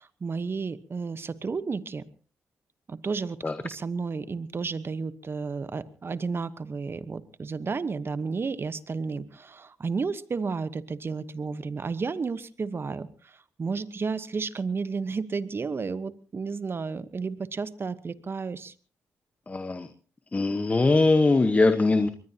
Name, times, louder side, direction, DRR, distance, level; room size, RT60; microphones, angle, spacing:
voice 1, 0.0-2.1 2.9-3.4 3.6-18.7, right 4 dB, 45° right, 14 dB, 1.1 m, -32 dB
voice 2, 19.5-19.9 20.3-22.1, left 3 dB, 30° left, 8 dB, 1.2 m, -21 dB
23.0 x 20.5 x 2.9 m, 0.38 s
cardioid pair, 70°, 6 cm